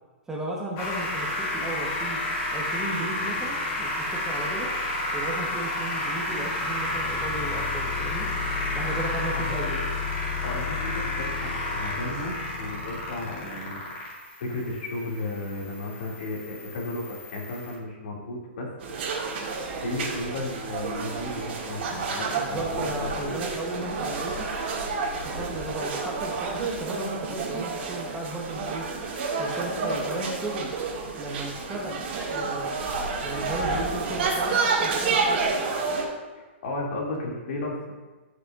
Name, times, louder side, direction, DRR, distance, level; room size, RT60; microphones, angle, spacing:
voice 1, 0.3-2.2 2.5-4.7 5.1-8.3 8.8-9.8 22.3-24.5 25.3-28.9 29.4-30.7 31.2-32.8 33.2-35.4, right 2 dB, 10° right, -3 dB, 1.0 m, -35 dB
sound 1, 0.8-17.7, left 2 dB, 35° left, 2.6 m, -30 dB
voice 2, 10.4-13.8 14.4-18.7 19.8-23.4 36.4-37.8, left 2 dB, 60° left, -2 dB, 2.4 m, -34 dB
sound 2, 18.8-36.0, right 4 dB, 55° right, 2.1 m, -29 dB
14.5 x 6.5 x 2.5 m, 1.2 s
hypercardioid pair, 165°, 7 cm